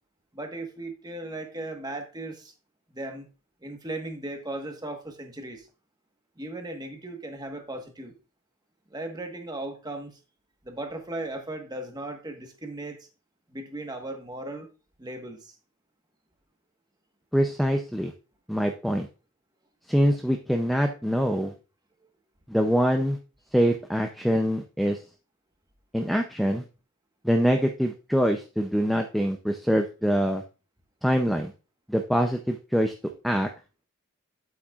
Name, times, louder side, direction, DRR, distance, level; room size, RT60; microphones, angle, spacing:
voice 1, 0.3-2.5 2.9-3.3 3.6-5.7 6.4-8.1 8.9-10.1 10.6-13.1 13.5-14.7 15.0-15.5, right 2 dB, 20° right, 4 dB, 1.3 m, -37 dB
voice 2, 17.3-18.1 18.5-19.1 19.9-21.5 22.5-23.2 23.5-25.0 25.9-26.6 27.2-30.4 31.0-31.5 31.9-32.9 33.2-33.5, equal, ahead, 4 dB, 0.5 m, -24 dB
8.8 x 8.1 x 2.4 m, 0.32 s
head